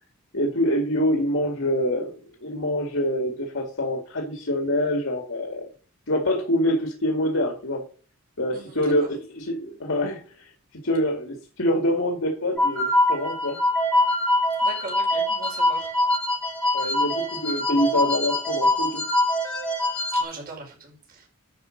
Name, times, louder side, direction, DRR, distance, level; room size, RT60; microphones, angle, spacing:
voice 1, 0.3-2.1 2.4-5.7 6.1-7.8 8.4-10.5 10.8-13.6 16.7-19.0, left 1 dB, 65° left, 1 dB, 2.3 m, -25 dB
voice 2, 8.5-8.9 14.6-15.9 20.1-21.3, right 4 dB, 45° right, -3 dB, 5.1 m, -39 dB
sound 1, 12.6-20.2, left 1 dB, 5° left, 2.7 m, -23 dB
11.0 x 5.5 x 6.4 m, 0.38 s
head